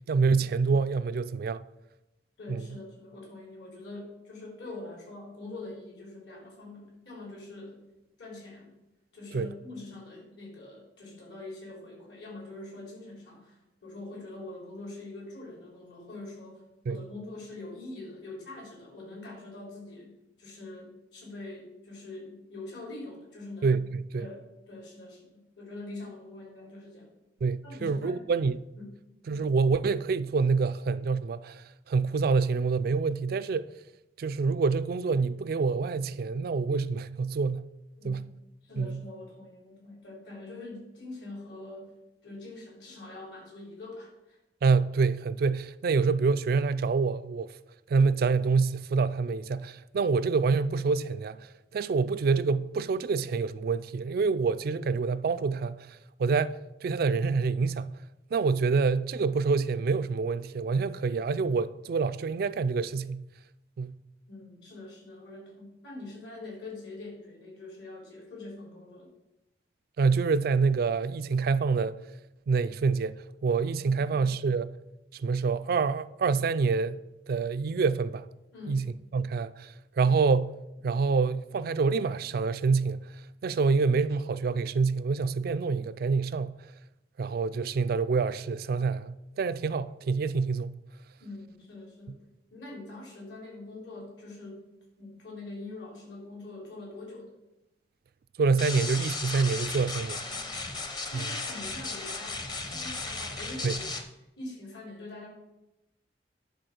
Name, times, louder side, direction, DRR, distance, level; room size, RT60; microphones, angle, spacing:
voice 1, 0.1-1.6 2.5-2.7 9.3-9.5 16.9-17.0 23.6-24.3 27.4-28.6 29.3-33.7 34.2-37.6 38.0-38.2 38.8-39.0 44.6-47.5 47.9-57.9 58.3-63.2 63.8-63.9 70.0-72.0 72.5-73.1 73.4-74.7 75.1-77.0 77.3-78.3 78.7-78.9 79.1-80.5 80.8-83.0 83.4-86.6 87.2-90.8 98.4-100.3 101.1-101.4 103.6-103.8, right 4 dB, 55° right, 0.3 m, -27 dB
voice 2, 2.4-7.8 8.2-8.7 9.1-16.6 16.9-20.1 20.4-23.7 24.2-27.1 27.6-28.2 28.8-29.0 38.0-38.3 38.6-41.9 42.2-44.4 64.3-69.1 73.8-74.2 78.5-78.8 91.2-92.2 92.5-94.7 95.0-97.3 100.1-103.8 104.4-105.3, left 2 dB, 70° left, 3.6 m, -44 dB
sound 1, 98.6-104.0, left 3 dB, 25° left, 0.8 m, -35 dB
10.5 x 4.0 x 6.4 m
head